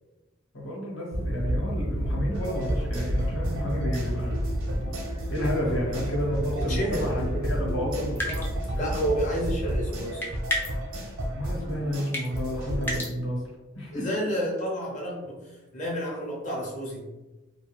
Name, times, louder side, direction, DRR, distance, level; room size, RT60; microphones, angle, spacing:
voice 1, 0.5-4.4 5.3-8.5 11.3-13.4 13.7-14.1, equal, 65° left, -3 dB, 0.9 m, -31 dB
sound 1, 1.1-9.9, equal, 55° right, 0.4 m, -31 dB
sound 2, 2.3-13.0, equal, 85° right, 0.7 m, -34 dB
voice 2, 6.7-7.0 8.7-10.2 13.9-17.0, equal, 35° left, -3 dB, 0.8 m, -30 dB
sound 3, 8.1-8.8 10.2-11.0 12.1-12.4 12.8-13.1, left 1 dB, 10° left, 0.4 m, -30 dB
2.4 x 2.2 x 3.1 m, 1.1 s
head